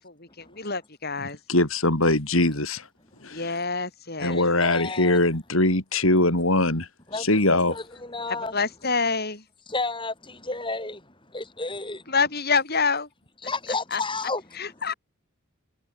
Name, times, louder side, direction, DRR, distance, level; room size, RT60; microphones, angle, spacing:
voice 1, 0.6-1.4 3.3-4.4 8.5-9.4 12.1-13.1 13.9-14.0 14.6-14.9, left 4 dB, 45° left, 6.1 m, -26 dB
voice 2, 1.2-2.9 3.2-3.6 4.2-6.9 7.2-7.7, left 2 dB, 65° left, 5.3 m, -22 dB
voice 3, 4.2-5.3 7.1-8.6 9.7-11.1 11.3-12.0 13.4-15.0, left 3 dB, 20° left, 7.7 m, -32 dB
head